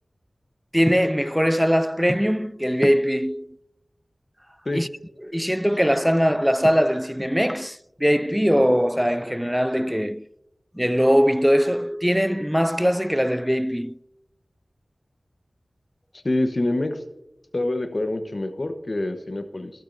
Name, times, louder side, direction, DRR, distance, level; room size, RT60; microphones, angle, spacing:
voice 1, 0.7-3.5 4.7-4.9 5.2-10.2 10.7-14.0, equal, 5° right, 0.3 m, -21 dB
voice 2, 16.1-17.0 17.5-19.7, left 2 dB, 55° left, 0.9 m, -26 dB
13.5 x 12.0 x 2.6 m
wide cardioid pair, 50°, 0 cm